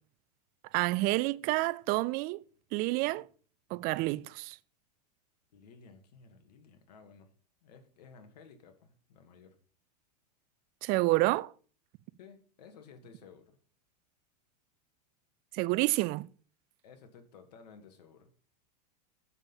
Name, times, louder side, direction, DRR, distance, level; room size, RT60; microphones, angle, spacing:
voice 1, 0.7-2.4 2.7-3.3 3.7-4.6 10.8-11.5 15.5-16.3, right 21 dB, 45° right, 0.5 m, -29 dB
voice 2, 5.5-7.3 7.6-9.6 12.2-13.6 16.8-18.3, left 5 dB, 75° left, 2.0 m, -55 dB
7.2 x 5.8 x 7.1 m
hypercardioid pair, 115°, 21 cm